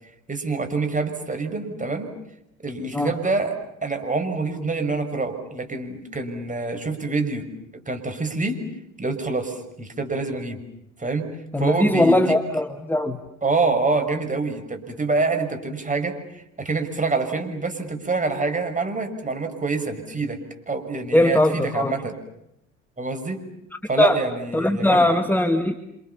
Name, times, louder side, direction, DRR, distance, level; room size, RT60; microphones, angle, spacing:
voice 1, 0.3-2.1 2.6-3.6 3.8-7.5 7.9-8.6 9.0-10.6 11.0-11.3 11.6-12.4 13.4-20.4 20.7-22.2 23.0-23.4 23.9-25.1, right 3 dB, 20° right, 6 dB, 6.4 m, -26 dB
voice 2, 11.5-13.2 21.1-21.9 24.0-24.2 24.5-25.8, left 1 dB, 5° left, 6 dB, 2.1 m, -20 dB
30.0 x 27.0 x 7.2 m, 0.80 s
hypercardioid pair, 70°, 38 cm